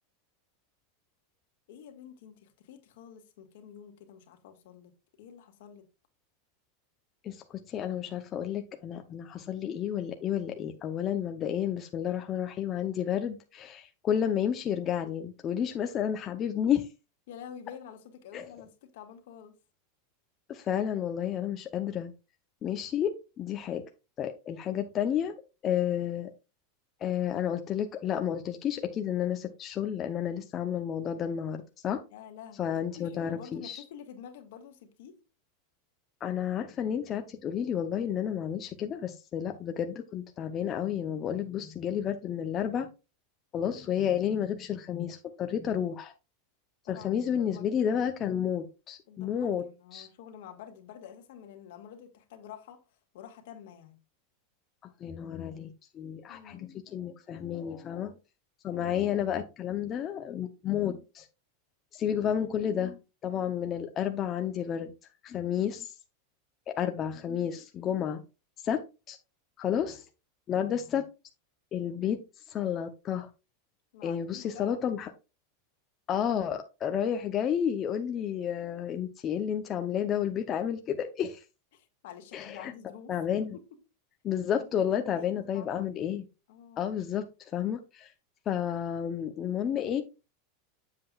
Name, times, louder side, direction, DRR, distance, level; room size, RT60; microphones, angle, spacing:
voice 1, 1.7-4.9 5.2-5.9 16.4-16.5 17.3-19.6 25.0-25.2 32.1-35.2 43.6-43.9 46.8-47.7 49.1-52.8 53.1-54.0 56.3-56.7 58.7-59.0 70.5-70.7 73.9-74.8 81.7-83.1 84.6-85.9 86.5-86.9, left 8 dB, 70° left, 1.8 m, -48 dB
voice 2, 7.2-16.8 18.3-18.5 20.5-22.1 22.6-23.8 24.2-25.3 25.6-26.3 27.0-32.0 32.6-33.8 36.2-42.9 43.5-46.1 46.9-49.7 49.9-50.1 55.0-58.2 58.6-61.3 61.9-64.9 65.2-66.0 66.7-68.2 68.6-68.8 69.1-69.2 69.6-70.1 70.5-71.1 71.7-73.3 74.0-75.1 76.1-81.4 82.3-82.7 83.1-83.6 84.2-86.2 86.8-88.1 88.5-90.0, left 9 dB, 35° left, 0.7 m, -31 dB
7.7 x 7.5 x 2.4 m
supercardioid pair, 125°, 0 cm